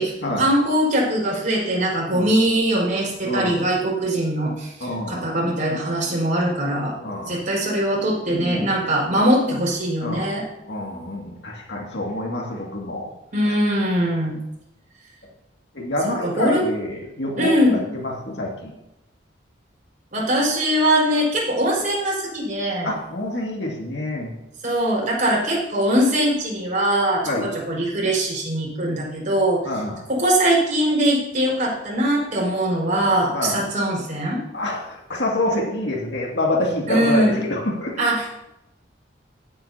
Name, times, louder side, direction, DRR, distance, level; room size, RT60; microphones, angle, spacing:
voice 1, 0.0-6.9 7.3-10.4 13.3-14.4 16.0-16.7 17.4-17.8 20.1-22.9 24.6-29.6 30.1-34.4 36.9-37.4 38.0-38.3, right 1 dB, 45° right, -4 dB, 5.2 m, -21 dB
voice 2, 3.2-3.6 4.8-5.3 7.0-7.4 8.3-8.7 10.0-10.3 10.7-13.1 13.4-13.5 15.7-18.8 22.8-24.3 27.2-27.5 29.6-30.1 33.3-33.6 34.5-38.1, left 1 dB, 70° left, -2 dB, 2.4 m, -27 dB
19.5 x 8.8 x 2.9 m, 0.90 s
head